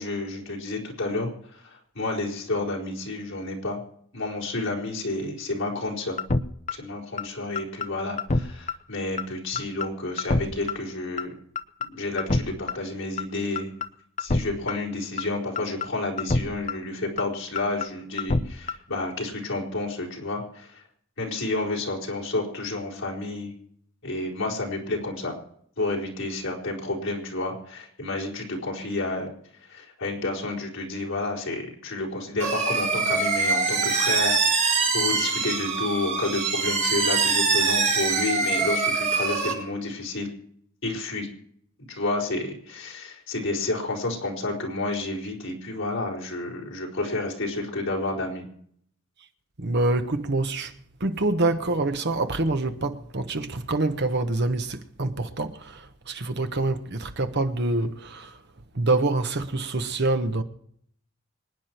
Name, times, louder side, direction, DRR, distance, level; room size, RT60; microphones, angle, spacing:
voice 1, 0.0-3.8 4.1-6.2 6.7-11.3 11.8-13.7 14.2-20.8 21.2-23.5 24.0-25.4 25.8-29.3 29.7-34.4 34.9-40.3 40.8-41.3 41.8-48.5, left 2 dB, 65° left, 4.4 m, -30 dB
sound 1, 6.2-6.4 6.7-6.8 7.2-7.3 7.6-7.9 8.2-8.4 8.7-8.8 9.2-9.3 9.6-9.9 10.2-10.4 10.7-10.8 11.2-11.3 11.6-11.9 12.2-12.4 12.7-12.8 13.2-13.3 13.6-13.9 14.2-14.4 14.7-14.8 15.2-15.3 15.6-15.9 16.2-16.4 16.7-16.8 17.2-17.3 17.6-17.9 18.2-18.4 18.7-18.8, left 3 dB, 35° left, 0.8 m, -25 dB
sound 2, 32.4-39.5, right 4 dB, 35° right, 5.2 m, -24 dB
voice 2, 49.6-50.7 51.0-58.3 58.7-60.4, right 2 dB, 55° right, 1.2 m, -26 dB
26.0 x 9.6 x 4.6 m
head